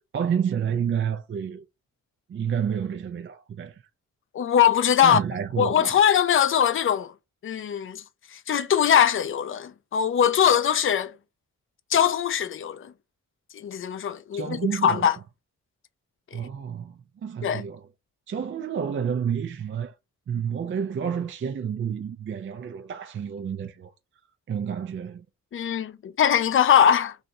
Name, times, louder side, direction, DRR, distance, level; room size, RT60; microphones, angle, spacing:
voice 1, 0.1-1.6 2.3-3.8 5.0-6.0 14.3-15.1 16.3-17.9 18.3-19.9 20.3-23.9 24.5-25.2, right 7 dB, 40° right, 0.4 m, -29 dB
voice 2, 4.3-5.2 5.6-7.1 7.4-8.0 8.3-11.1 11.9-12.9 13.5-15.2 16.3-16.4 17.4-17.6 25.5-27.2, left 9 dB, 40° left, 0.4 m, -21 dB
3.2 x 2.7 x 2.6 m
cardioid pair, 80°, 32 cm